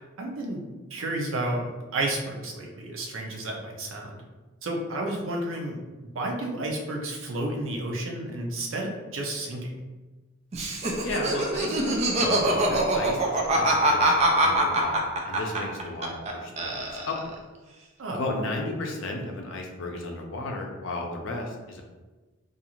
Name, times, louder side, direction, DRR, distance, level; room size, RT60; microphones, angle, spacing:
voice 1, 0.0-4.2 4.6-5.8 6.1-9.8 18.0-18.2, right 1 dB, 80° right, 0 dB, 0.6 m, -31 dB
Laughter, 10.5-16.3 16.6-17.3, right 1 dB, 35° right, 0.4 m, -24 dB
voice 2, 11.0-15.0 15.2-17.4 18.1-21.8, left 2 dB, 70° left, 1 dB, 0.5 m, -34 dB
2.5 x 2.4 x 2.9 m, 1.2 s
head